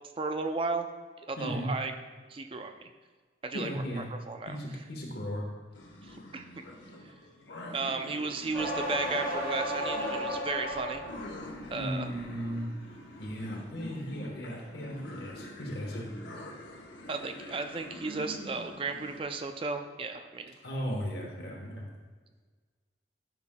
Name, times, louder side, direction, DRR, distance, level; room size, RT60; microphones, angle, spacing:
voice 1, 0.2-0.9 1.3-1.9 2.3-2.7 3.4-3.8 4.3-4.6 6.0-6.6 7.0-7.1 7.7-11.0 11.7-12.1 17.1-20.6, right 3 dB, 30° right, 7 dB, 0.4 m, -34 dB
voice 2, 1.4-1.7 3.5-4.1 4.5-5.4 11.7-12.7 13.2-16.1 20.6-21.8, equal, 60° left, -1 dB, 1.1 m, -36 dB
sound 1, 5.7-19.2, left 1 dB, 75° left, 0.8 m, -45 dB
sound 2, 8.5-11.2 11.7-12.2, equal, 5° left, 1.9 m, -33 dB
11.0 x 5.8 x 2.2 m, 1.4 s
head